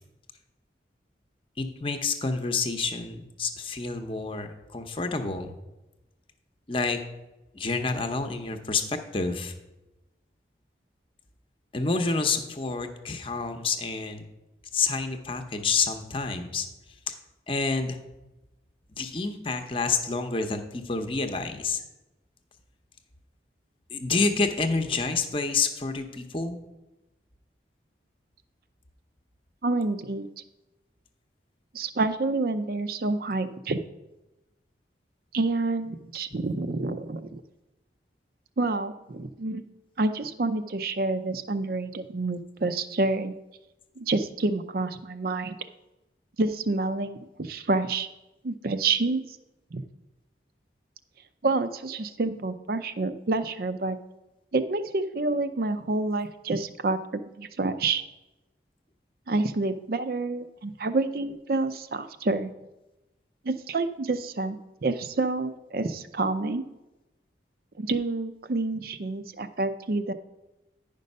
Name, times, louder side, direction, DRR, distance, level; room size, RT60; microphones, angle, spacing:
voice 1, 1.6-5.6 6.7-7.0 7.5-9.5 11.7-14.2 14.7-16.7 17.1-17.2 17.5-18.0 19.0-21.8 23.9-26.6, left 4 dB, 30° left, 6 dB, 0.7 m, -28 dB
voice 2, 29.6-30.3 31.7-33.8 35.3-37.4 38.6-39.6 40.0-43.3 44.0-45.6 46.4-48.1 48.4-49.2 49.7-49.8 51.4-54.0 54.5-58.0 59.3-62.5 63.4-64.6 64.8-66.7 67.8-70.1, right 3 dB, 55° right, 11 dB, 0.5 m, -28 dB
10.0 x 5.3 x 5.4 m, 1.0 s
head